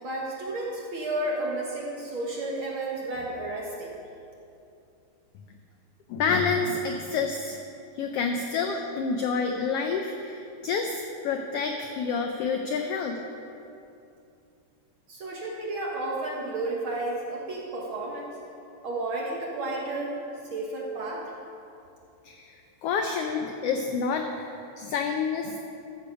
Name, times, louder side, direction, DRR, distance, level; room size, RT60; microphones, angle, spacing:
voice 1, 0.0-4.0 15.1-18.3 18.8-20.2 20.5-21.2, right 2 dB, 60° right, -2 dB, 1.5 m, -32 dB
voice 2, 6.1-7.6 8.0-13.2 22.2-22.5 22.8-25.6, left 5 dB, 90° left, 4 dB, 1.3 m, -28 dB
13.5 x 6.7 x 4.9 m, 2.7 s
omnidirectional pair, 3.4 m